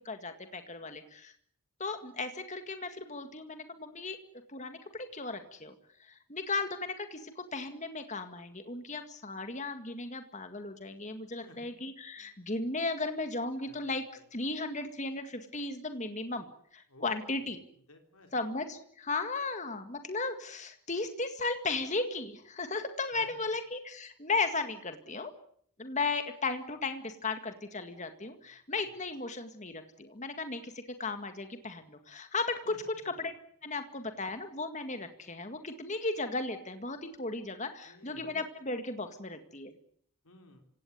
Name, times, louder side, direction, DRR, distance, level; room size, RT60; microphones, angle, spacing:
voice 1, 0.1-1.3 1.8-4.2 4.5-5.7 6.0-14.0 14.3-16.5 16.7-17.6 18.3-25.3 25.8-33.3 33.6-39.7, left 3 dB, 30° left, 8 dB, 2.0 m, -36 dB
voice 2, 11.4-11.7 12.2-12.4 13.7-14.3 16.9-17.5 17.7-18.3 23.2-23.5 28.4-28.5 28.9-29.1 32.6-32.8 37.8-38.3 40.2-40.6, left 2 dB, 80° left, 4 dB, 3.9 m, -56 dB
26.5 x 17.5 x 9.6 m, 0.65 s
head